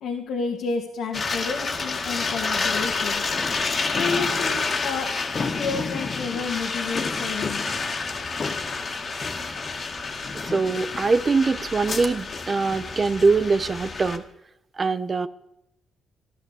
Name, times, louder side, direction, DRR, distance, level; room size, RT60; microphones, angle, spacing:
voice 1, 0.0-3.2 3.9-7.6, left 5 dB, 80° left, 0 dB, 2.1 m, -31 dB
sound 1, 1.1-14.2, left 4 dB, 40° left, 2.1 m, -28 dB
voice 2, 10.5-14.2 14.8-15.3, right 4 dB, 35° right, 14 dB, 0.9 m, -22 dB
14.5 x 11.5 x 8.3 m, 0.82 s
cardioid pair, 90°, 0 cm